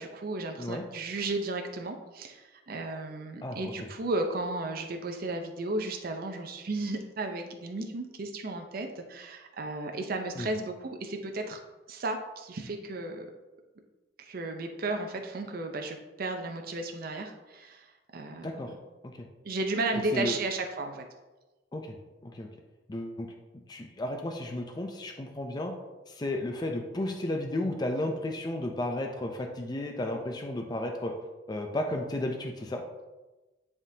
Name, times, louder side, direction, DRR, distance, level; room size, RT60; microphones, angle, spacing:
voice 1, 0.0-11.6 11.9-13.3 14.2-18.7 19.4-21.0, right 2 dB, 55° right, 4 dB, 0.6 m, -34 dB
voice 2, 3.4-3.9 10.4-10.5 18.4-18.7 19.0-19.3 20.1-20.4 21.7-22.5 22.9-23.3 23.7-25.7 26.1-31.1 31.5-32.8, left 1 dB, 20° left, 3 dB, 0.5 m, -33 dB
9.6 x 3.6 x 2.7 m, 1.1 s
head